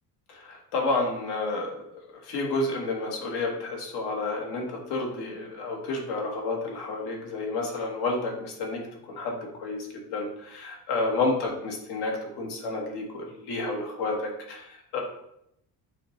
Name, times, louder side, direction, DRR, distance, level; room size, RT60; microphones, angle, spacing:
voice 1, 0.3-1.8 2.1-15.0, left 3 dB, 80° left, 0 dB, 1.1 m, -30 dB
6.5 x 2.2 x 3.0 m, 0.77 s
cardioid pair, 175°, 39 cm